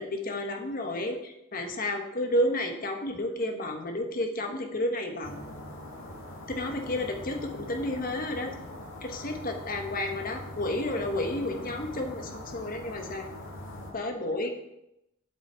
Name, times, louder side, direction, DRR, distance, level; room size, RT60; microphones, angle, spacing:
voice 1, 0.0-5.4 6.5-8.5 9.0-13.3 13.9-14.5, left 1 dB, 40° left, 4 dB, 1.3 m, -31 dB
sound 1, 5.2-13.9, left 1 dB, 60° left, 2.4 m, -42 dB
7.9 x 7.9 x 4.5 m, 0.84 s
head